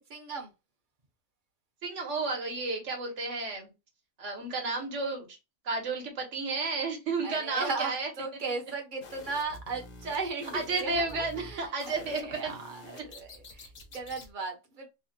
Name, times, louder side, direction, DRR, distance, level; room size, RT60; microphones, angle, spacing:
voice 1, 0.1-0.5 7.2-14.9, right 4 dB, 45° right, 0.8 m, -36 dB
voice 2, 1.8-3.7 4.2-5.4 5.6-8.1 10.5-12.5, right 3 dB, 70° right, 1.3 m, -32 dB
sound 1, 9.0-14.3, left 2 dB, 50° left, 0.8 m, -48 dB
3.3 x 2.1 x 2.6 m
omnidirectional pair, 1.3 m